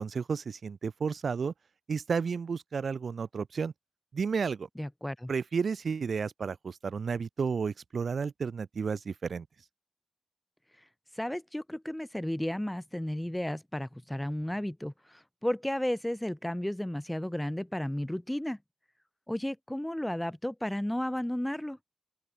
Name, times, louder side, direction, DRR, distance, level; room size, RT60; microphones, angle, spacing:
voice 1, 0.0-1.5 1.9-3.7 4.1-4.7 5.3-9.4, right 5 dB, 75° right, 1.6 m, -32 dB
voice 2, 4.8-5.3 11.2-18.6 19.3-21.8, left 1 dB, 10° left, 0.8 m, -33 dB
open air
wide cardioid pair, 80°, 0 cm